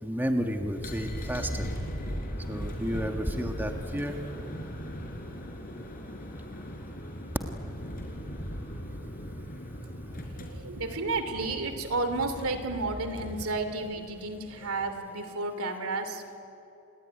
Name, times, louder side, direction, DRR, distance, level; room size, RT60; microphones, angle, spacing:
voice 1, 0.0-1.7 2.5-4.2, equal, 10° right, 4 dB, 1.4 m, -31 dB
sound 1, 0.6-15.0, equal, 40° left, 4.5 m, -39 dB
voice 2, 10.0-16.4, right 3 dB, 75° right, 8 dB, 2.8 m, -32 dB
29.0 x 21.0 x 9.8 m, 3.0 s
head